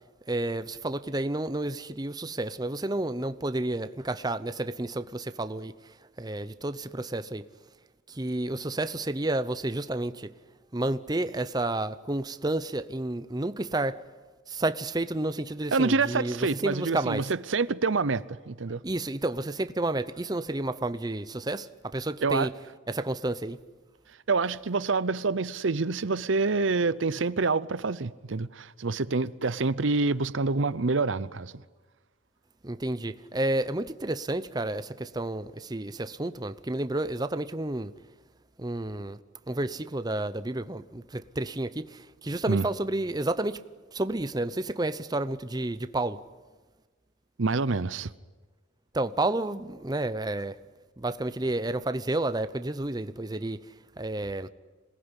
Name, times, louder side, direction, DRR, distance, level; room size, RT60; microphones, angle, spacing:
voice 1, 0.3-5.7 6.2-7.4 8.1-10.3 10.7-14.0 14.5-17.2 18.8-22.5 22.9-23.6 32.6-37.9 38.6-39.2 39.5-43.6 43.9-46.2 48.9-50.6 51.0-53.6 54.0-54.5, right 2 dB, 20° right, 0.7 m, -30 dB
voice 2, 15.7-18.8 22.2-22.5 24.3-31.5 42.5-42.6 47.4-48.1, right 4 dB, 75° right, 0.7 m, -27 dB
27.0 x 19.0 x 9.9 m
head